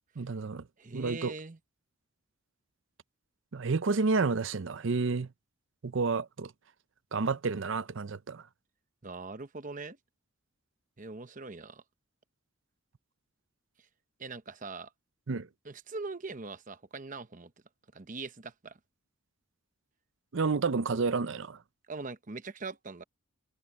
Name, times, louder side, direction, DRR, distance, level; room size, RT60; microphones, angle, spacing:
voice 1, 0.2-0.6 0.9-1.3 3.5-5.3 5.8-6.5 7.1-8.4 15.3-15.5 20.3-21.6, right 4 dB, 60° right, 0.6 m, -30 dB
voice 2, 0.8-1.6 9.0-10.0 11.0-11.8 14.2-14.9 15.6-17.5 17.9-18.8 21.9-23.0, right 3 dB, 35° right, 0.9 m, -41 dB
head